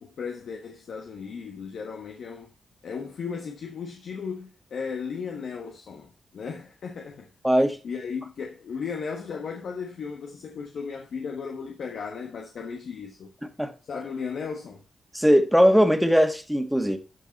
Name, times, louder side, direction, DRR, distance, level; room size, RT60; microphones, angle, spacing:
voice 1, 0.0-2.5 2.8-7.3 7.8-13.3 13.9-14.8, left 5 dB, 75° left, 1.3 m, -35 dB
voice 2, 7.4-7.8 13.6-13.7 15.1-17.0, equal, ahead, 1.7 m, -19 dB
12.0 x 5.3 x 4.1 m
cardioid pair, 70°, 0 cm